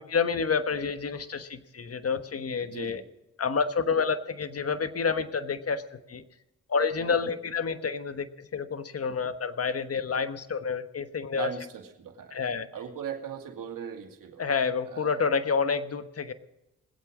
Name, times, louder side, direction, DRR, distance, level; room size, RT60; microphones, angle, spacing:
voice 1, 0.0-3.0 3.4-6.2 6.7-11.5 12.3-12.7 14.4-16.3, left 5 dB, 45° left, 10 dB, 1.3 m, -29 dB
voice 2, 2.7-3.1 7.0-7.3 11.3-12.4 12.7-14.4 14.8-15.2, right 7 dB, 75° right, 3 dB, 2.3 m, -39 dB
20.5 x 8.4 x 6.2 m, 0.95 s
supercardioid pair, 50°, 33 cm